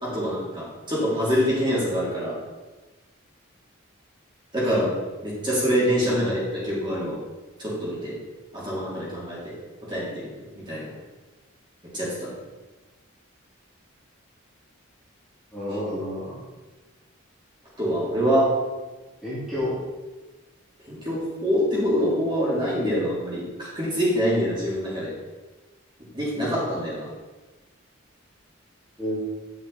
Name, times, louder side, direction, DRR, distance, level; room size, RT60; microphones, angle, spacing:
voice 1, 0.0-2.3 4.5-4.9 5.2-7.2 7.6-8.1 8.5-9.5 9.9-10.3 10.6-10.9 11.9-12.3 17.8-18.5 20.9-25.1 26.1-27.1, equal, 20° right, -7 dB, 3.3 m, -25 dB
voice 2, 6.0-6.3 15.5-16.4 19.2-19.8 29.0-29.2, left 1 dB, ahead, -11 dB, 2.6 m, -30 dB
11.0 x 6.4 x 4.3 m, 1.2 s
head